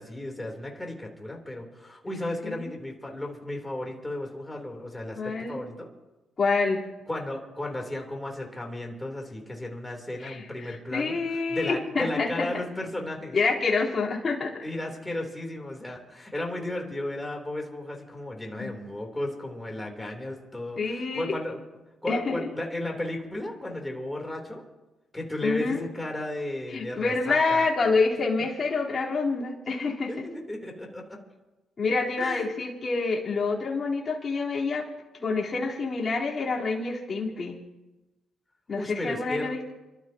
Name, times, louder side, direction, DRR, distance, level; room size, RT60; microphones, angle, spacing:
voice 1, 0.0-5.9 7.1-13.4 14.6-21.6 22.0-24.6 25.1-27.7 30.1-31.2 32.2-32.5 38.7-39.5, left 1 dB, 10° left, 1 dB, 3.4 m, -34 dB
voice 2, 5.1-5.6 6.4-6.8 10.2-12.5 13.3-14.6 18.6-18.8 20.8-21.3 22.1-22.5 25.4-25.9 26.7-30.1 31.8-34.8 35.2-37.6 38.7-39.6, left 4 dB, 40° left, -4 dB, 3.8 m, -27 dB
30.0 x 13.0 x 2.9 m, 1.1 s
cardioid pair, 90°, 0 cm